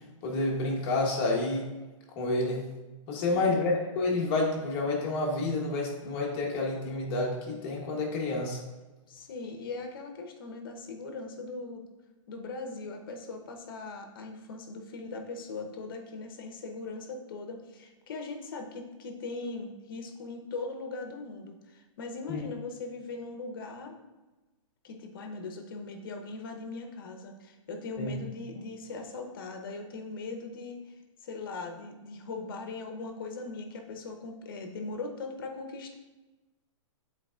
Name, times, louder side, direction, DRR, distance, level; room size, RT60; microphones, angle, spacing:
voice 1, 0.2-1.7 2.2-2.6 3.1-8.6 22.3-22.4 28.0-28.1, left 2 dB, 20° left, -1 dB, 0.9 m, -29 dB
voice 2, 3.1-3.6 9.1-11.8 12.3-24.0 24.8-35.9, left 3 dB, 40° left, 4 dB, 0.9 m, -40 dB
10.5 x 4.1 x 2.4 m, 1.1 s
hypercardioid pair, 175°, 17 cm